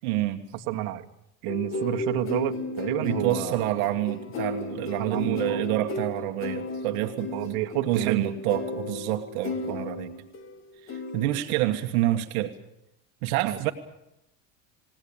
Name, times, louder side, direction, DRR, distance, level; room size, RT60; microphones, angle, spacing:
voice 1, 0.0-0.4 3.0-7.3 7.8-10.1 10.8-12.5 13.2-13.7, right 15 dB, 80° right, 6 dB, 1.5 m, -28 dB
voice 2, 0.5-1.0 1.4-3.6 5.0-5.6 7.3-8.2 9.7-9.8 13.4-13.7, right 13 dB, 65° right, 5 dB, 1.7 m, -30 dB
sound 1, 1.5-10.6 10.9-11.4, left 3 dB, 30° left, 2.1 m, -34 dB
21.5 x 18.0 x 8.7 m, 0.85 s
cardioid pair, 135°, 41 cm